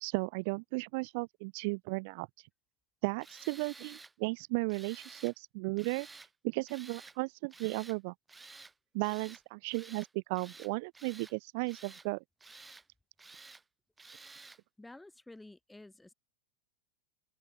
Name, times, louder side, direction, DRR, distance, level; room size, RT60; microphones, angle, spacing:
voice 1, 0.0-2.3 3.0-6.1 6.4-8.1 8.9-12.2, right 29 dB, 45° right, 0.3 m, -35 dB
Tools, 3.2-4.1 4.7-5.4 5.8-6.3 6.7-7.2 7.5-8.0 8.3-8.7 9.0-9.4 9.7-10.1 10.3-11.3 11.7-12.1 12.4-12.8 13.2-13.6 14.0-14.6, right 3 dB, 10° right, 1.2 m, -52 dB
voice 2, 14.8-16.1, left 2 dB, 5° left, 0.6 m, -52 dB
open air
figure-of-eight pair, 90°, 0 cm